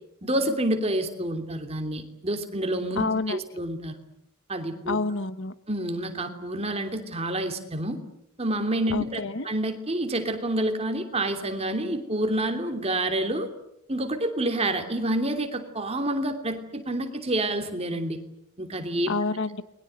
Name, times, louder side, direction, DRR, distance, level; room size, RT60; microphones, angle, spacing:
voice 1, 0.2-4.0 4.5-5.0 5.7-8.0 8.4-13.5 13.9-18.2 18.6-19.1, right 1 dB, 25° right, 6 dB, 3.0 m, -28 dB
voice 2, 3.0-3.4 4.9-5.5 8.9-9.5 19.1-19.6, left 3 dB, 55° left, 13 dB, 1.2 m, -28 dB
30.0 x 22.0 x 8.1 m, 0.76 s
head